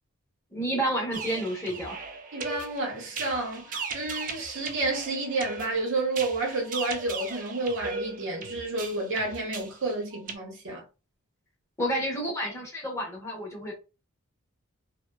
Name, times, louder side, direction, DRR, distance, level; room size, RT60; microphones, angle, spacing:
voice 1, 0.5-2.0 11.8-13.7, right 1 dB, 15° left, 0.8 m, -30 dB
sound 1, 1.1-10.4, right 4 dB, 40° right, 0.4 m, -38 dB
voice 2, 2.3-10.8, right 2 dB, 60° right, 0.8 m, -30 dB
2.6 x 2.1 x 2.2 m
head